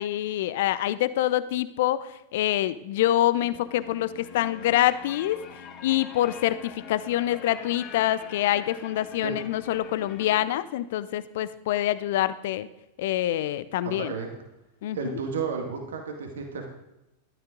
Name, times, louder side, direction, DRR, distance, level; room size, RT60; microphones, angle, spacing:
voice 1, 0.0-5.4 5.8-12.7 13.0-14.1 14.8-15.2, left 13 dB, 55° left, 16 dB, 0.7 m, -26 dB
sound 1, 3.3-10.4, left 7 dB, 30° left, 2.2 m, -44 dB
voice 2, 13.8-14.3 14.9-16.7, right 5 dB, 65° right, 2 dB, 2.2 m, -32 dB
15.0 x 12.5 x 3.9 m, 0.94 s
figure-of-eight pair, 90°, 0 cm